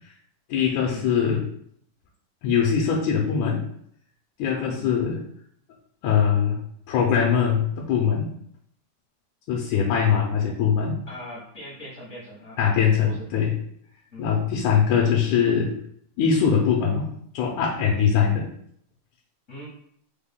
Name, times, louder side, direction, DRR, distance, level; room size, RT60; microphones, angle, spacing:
voice 1, 0.5-1.4 2.4-3.6 4.4-5.2 6.0-6.6 6.9-8.3 9.5-11.0 12.6-13.5 14.2-15.7 16.2-18.5, left 7 dB, 80° left, -2 dB, 1.9 m, -22 dB
voice 2, 4.5-4.9 10.0-10.2 11.1-12.6 13.0-13.3 14.1-14.3 19.5-19.7, equal, 55° left, -7 dB, 0.8 m, -40 dB
5.5 x 2.2 x 3.5 m, 0.66 s
omnidirectional pair, 3.6 m